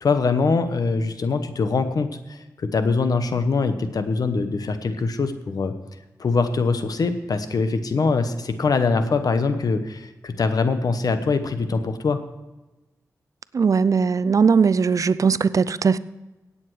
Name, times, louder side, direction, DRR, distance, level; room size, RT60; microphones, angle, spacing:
voice 1, 0.0-5.7 6.2-12.2, left 4 dB, 70° left, 1.0 m, -23 dB
voice 2, 13.5-16.0, right 5 dB, 55° right, 0.4 m, -19 dB
17.0 x 8.6 x 4.8 m
cardioid pair, 65°, 7 cm